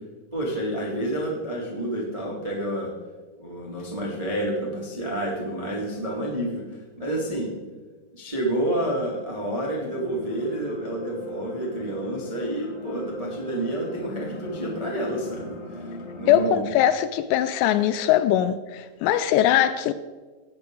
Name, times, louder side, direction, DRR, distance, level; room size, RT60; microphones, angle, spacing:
voice 1, 0.3-2.9 3.4-6.6 7.0-7.5 8.1-15.6 16.2-16.7, right 1 dB, 30° right, 0.6 m, -29 dB
sound 1, 9.9-16.4, left 2 dB, 60° left, 5.1 m, -39 dB
voice 2, 16.3-19.9, left 11 dB, 85° left, 2.6 m, -21 dB
19.0 x 7.2 x 3.8 m
omnidirectional pair, 5.2 m